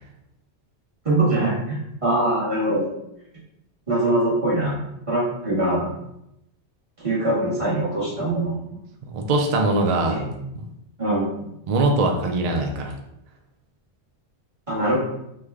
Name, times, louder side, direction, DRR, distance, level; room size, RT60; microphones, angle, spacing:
voice 1, 1.0-2.8 3.9-4.8 5.1-5.9 7.0-8.6 10.0-10.3 11.0-11.5 14.7-14.9, right 1 dB, 30° right, -8 dB, 1.2 m, -23 dB
voice 2, 9.0-10.2 10.5-10.7 11.7-12.9, right 2 dB, 55° right, 3 dB, 0.4 m, -22 dB
3.3 x 2.2 x 3.4 m, 0.82 s
omnidirectional pair, 1.2 m